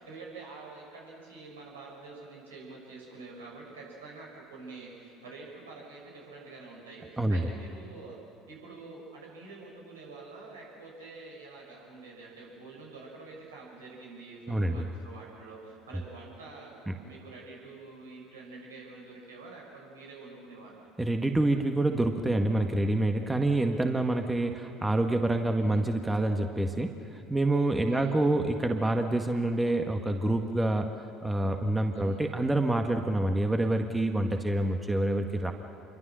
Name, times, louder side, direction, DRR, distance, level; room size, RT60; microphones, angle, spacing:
voice 1, 0.0-8.2 8.5-20.8 25.6-25.8 27.9-28.2 31.9-32.2, right 3 dB, 80° right, -3 dB, 7.2 m, -47 dB
voice 2, 14.5-14.8 16.9-17.0 21.0-30.9 31.2-35.5, right 1 dB, 10° right, 4 dB, 1.8 m, -27 dB
27.5 x 23.5 x 6.4 m, 2.5 s
figure-of-eight pair, 65°, 0 cm